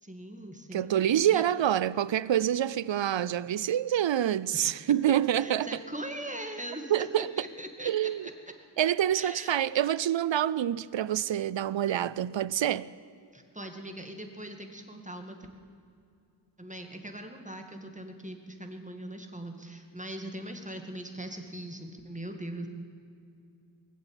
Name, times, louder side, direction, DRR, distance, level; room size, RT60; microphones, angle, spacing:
voice 1, 0.0-1.4 4.5-4.7 5.4-7.9 9.1-9.6 13.3-15.4 16.6-22.7, right 1 dB, 15° right, 2.0 m, -41 dB
voice 2, 0.7-5.7 6.9-7.3 7.8-8.2 8.8-12.9, right 11 dB, 75° right, 0.5 m, -27 dB
20.5 x 7.9 x 9.0 m
wide cardioid pair, 40°, 45 cm